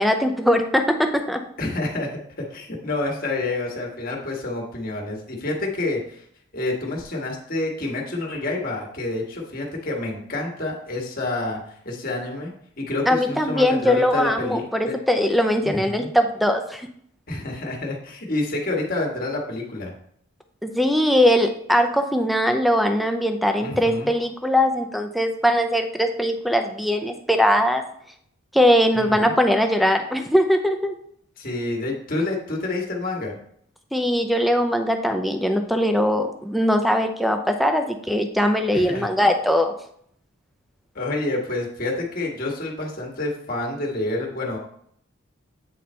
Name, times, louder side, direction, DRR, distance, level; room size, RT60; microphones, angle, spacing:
voice 1, 0.0-1.4 13.1-16.9 20.6-27.8 28.5-30.9 33.9-39.7, equal, ahead, 6 dB, 0.5 m, -21 dB
voice 2, 1.6-6.2 6.5-14.9 15.6-16.1 17.3-19.9 23.6-24.1 28.9-29.3 31.4-33.4 38.7-39.3 40.9-44.6, left 2 dB, 45° left, 0 dB, 1.6 m, -28 dB
8.6 x 4.0 x 4.3 m, 0.66 s
head